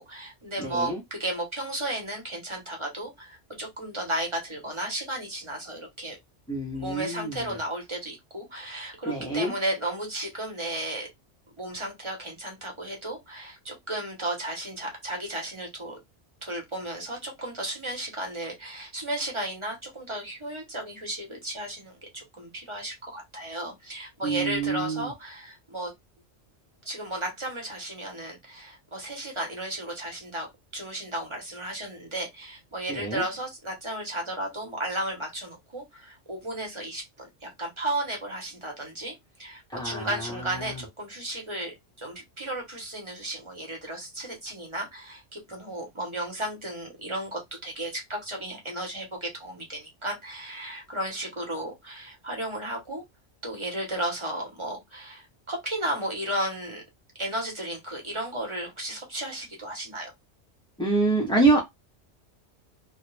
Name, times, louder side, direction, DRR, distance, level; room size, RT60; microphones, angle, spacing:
voice 1, 0.0-6.2 6.7-11.1 11.6-16.0 16.4-25.9 26.8-39.1 39.4-53.0 53.4-56.8 57.2-60.1, right 1 dB, 30° right, 0.9 m, -34 dB
voice 2, 0.6-1.0 6.5-7.4 9.1-9.5 24.2-25.1 32.9-33.2 39.7-40.7 60.8-61.6, right 3 dB, 5° left, 0.3 m, -26 dB
2.3 x 2.1 x 3.1 m
omnidirectional pair, 1.2 m